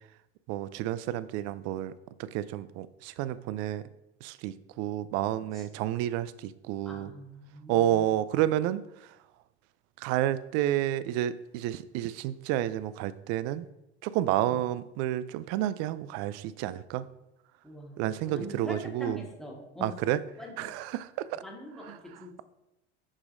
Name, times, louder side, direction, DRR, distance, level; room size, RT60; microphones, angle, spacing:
voice 1, 0.5-1.9 2.2-3.8 4.2-7.1 7.7-8.8 10.0-13.7 14.0-17.1 18.0-19.2 19.8-20.2 20.6-21.3 21.9-22.0, right 13 dB, 50° right, 16 dB, 0.4 m, -30 dB
voice 2, 5.5-5.9 6.8-8.1 14.4-14.6 17.6-19.9 20.4-20.7 21.4-22.4, left 1 dB, ahead, -1 dB, 1.4 m, -43 dB
6.1 x 6.1 x 2.6 m, 0.89 s
hypercardioid pair, 80°, 33 cm